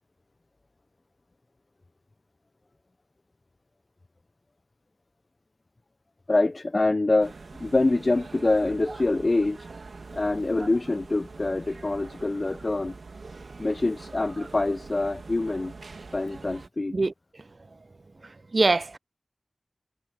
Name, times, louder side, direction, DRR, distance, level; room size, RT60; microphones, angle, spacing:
voice 1, 6.3-7.3 7.6-9.6 10.1-13.0 13.6-15.7 16.1-16.9, left 2 dB, 45° left, 0.4 m, -25 dB
sound 1, 7.2-16.7, right 3 dB, 85° right, 2.1 m, -44 dB
voice 2, 18.2-19.0, right 3 dB, 60° right, 0.5 m, -24 dB
wide cardioid pair, 55°, 0 cm